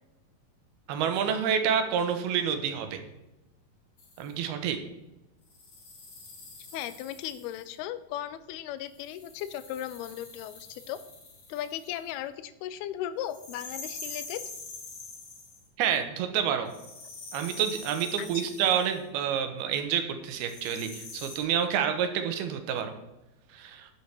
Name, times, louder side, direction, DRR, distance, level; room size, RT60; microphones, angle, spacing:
voice 1, 0.9-3.0 4.2-4.8 15.8-16.7 17.3-22.9 23.5-23.9, right 8 dB, 85° right, 7 dB, 3.1 m, -28 dB
sound 1, 4.0-4.3 5.5-7.7 8.9-12.1 13.3-15.7 16.7-19.0 20.3-21.4, left 3 dB, 45° left, 2.8 m, -45 dB
voice 2, 6.7-11.0 11.5-14.4 18.2-18.5, left 11 dB, 90° left, 14 dB, 2.7 m, -37 dB
11.5 x 8.3 x 4.7 m, 0.96 s
omnidirectional pair, 4.4 m